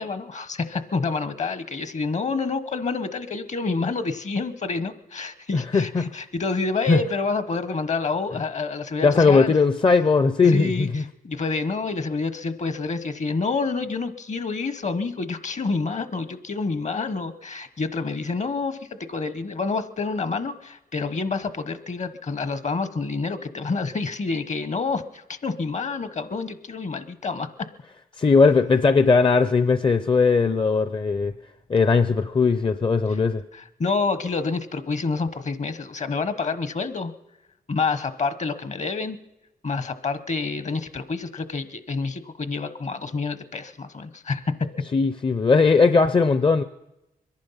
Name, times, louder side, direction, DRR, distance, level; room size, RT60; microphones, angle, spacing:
voice 1, 0.0-9.5 10.4-27.5 33.1-33.2 33.5-37.1 37.7-39.2 39.6-44.7, left 4 dB, 50° left, 14 dB, 1.0 m, -28 dB
voice 2, 5.5-6.0 6.9-7.0 9.0-11.0 28.2-31.3 31.7-33.4 44.9-46.6, left 4 dB, 35° left, 12 dB, 0.6 m, -19 dB
23.0 x 11.0 x 5.7 m, 0.95 s
cardioid pair, 60°, 15 cm